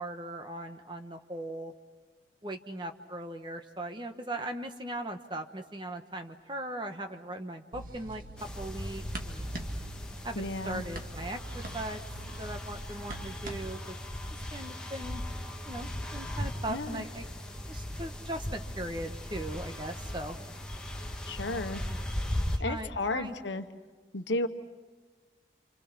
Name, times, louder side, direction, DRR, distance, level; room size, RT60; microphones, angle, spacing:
voice 1, 0.0-1.7 2.4-9.5 10.2-12.0 12.2-14.0 14.5-15.2 15.6-17.3 17.6-20.4 21.4-21.9 22.7-23.6, right 1 dB, 25° right, 6 dB, 1.2 m, -39 dB
sound 1, 7.7-13.8, right 1 dB, 50° right, 1.9 m, -43 dB
sound 2, 8.4-22.6, left 1 dB, 5° left, 1.7 m, -38 dB
voice 2, 10.3-10.8 16.7-17.0 21.3-21.8 22.6-23.7 24.1-24.5, left 2 dB, 90° left, 8 dB, 1.2 m, -33 dB
29.0 x 26.5 x 6.0 m, 1.3 s
head